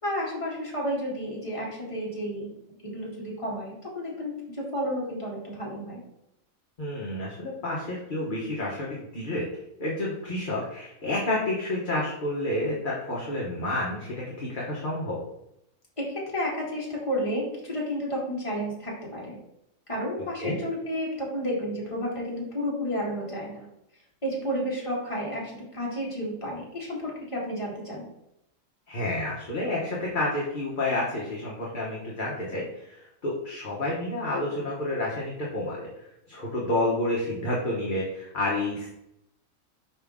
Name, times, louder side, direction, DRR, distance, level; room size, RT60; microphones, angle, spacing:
voice 1, 0.0-2.5 2.8-6.0 16.0-19.4 19.9-23.7 24.2-28.1, equal, 25° left, -5 dB, 2.1 m, -31 dB
voice 2, 6.8-9.5 9.8-15.2 20.4-20.6 28.9-35.9 36.3-38.9, left 1 dB, 40° left, -5 dB, 1.2 m, -29 dB
5.6 x 5.0 x 3.6 m, 0.82 s
omnidirectional pair, 1.4 m